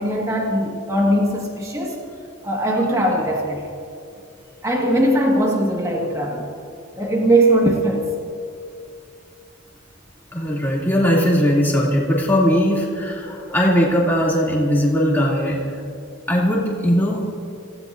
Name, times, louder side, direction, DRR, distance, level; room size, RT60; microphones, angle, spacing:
voice 1, 0.0-2.0 2.4-3.7 4.6-6.5 6.9-8.1, right 1 dB, 15° right, -1 dB, 1.7 m, -20 dB
voice 2, 10.3-15.6 16.3-17.2, equal, 10° left, -5 dB, 2.7 m, -19 dB
28.5 x 16.5 x 2.6 m, 2.5 s
head